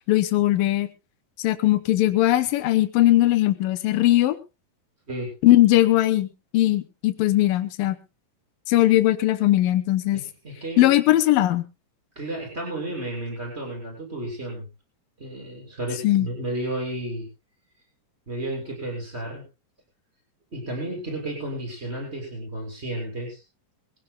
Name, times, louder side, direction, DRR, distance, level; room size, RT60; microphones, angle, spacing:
voice 1, 0.1-0.9 1.4-4.4 5.4-6.3 6.5-8.0 8.7-10.2 10.8-11.6 16.0-16.3, left 15 dB, 85° left, 12 dB, 2.7 m, -19 dB
voice 2, 10.1-10.9 12.2-14.7 15.2-17.3 18.3-19.4 20.5-23.4, right 1 dB, 15° right, 0 dB, 7.2 m, -32 dB
22.5 x 16.0 x 2.2 m, 0.28 s
omnidirectional pair, 3.9 m